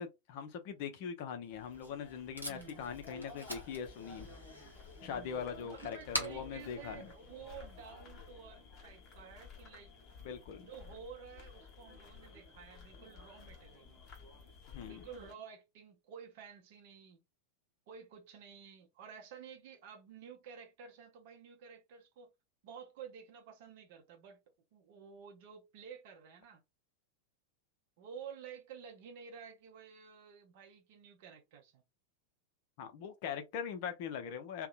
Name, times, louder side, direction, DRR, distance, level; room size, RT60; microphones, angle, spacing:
voice 1, 0.0-4.3 5.0-7.1 10.2-10.7 14.7-15.0 32.8-34.7, left 7 dB, 45° left, 0.5 m, -41 dB
Packing tape duct tape, 1.4-7.9, equal, 85° right, 0.7 m, -46 dB
sound 1, 1.5-15.3, left 4 dB, 30° left, 0.9 m, -53 dB
voice 2, 2.5-3.3 5.0-9.9 10.6-14.0 14.9-17.2 17.9-22.3 22.6-24.4 24.7-26.6 28.0-31.8, right 7 dB, 50° right, 0.6 m, -52 dB
2.6 x 2.1 x 2.4 m
figure-of-eight pair, 90°, 0 cm